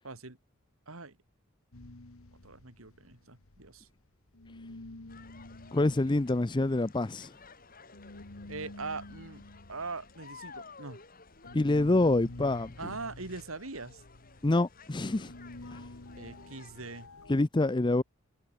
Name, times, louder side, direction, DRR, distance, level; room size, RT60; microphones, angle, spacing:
voice 1, 0.0-0.4 0.9-1.2 2.4-3.9 8.5-9.4 9.7-11.0 12.8-14.0 16.2-17.1, right 3 dB, 75° right, 2.7 m, -41 dB
sound 1, 1.7-4.1 4.3-17.4, left 2 dB, 80° left, 1.6 m, -49 dB
sound 2, 5.1-17.1, left 4 dB, 40° left, 5.3 m, -54 dB
voice 2, 5.7-7.3 11.5-12.9 14.4-15.3 15.7-15.8 17.3-18.0, left 2 dB, 20° left, 0.5 m, -26 dB
head